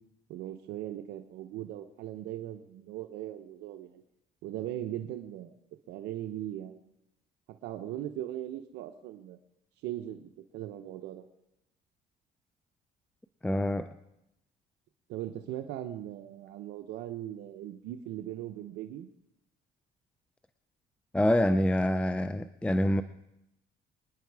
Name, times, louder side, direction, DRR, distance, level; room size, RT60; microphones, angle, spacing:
voice 1, 0.3-4.0 4.4-6.8 7.5-9.4 9.8-11.3 15.1-19.1, right 12 dB, 85° right, 7 dB, 0.9 m, -39 dB
voice 2, 13.4-13.9 21.1-23.0, left 1 dB, 5° left, 11 dB, 0.5 m, -26 dB
25.5 x 10.5 x 4.8 m, 0.84 s
cardioid pair, 110°, 17 cm